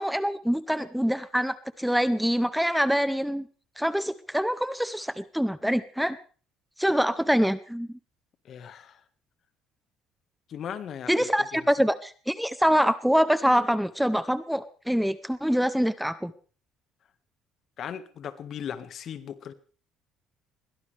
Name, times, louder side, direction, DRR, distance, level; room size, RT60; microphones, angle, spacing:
voice 1, 0.0-3.5 3.8-6.2 6.8-7.9 11.1-16.3, equal, ahead, 14 dB, 0.7 m, -25 dB
voice 2, 8.4-9.0 10.5-11.6 17.8-19.5, left 8 dB, 50° left, 11 dB, 1.7 m, -38 dB
22.0 x 17.5 x 3.5 m, 0.40 s
cardioid pair, 115°, 0 cm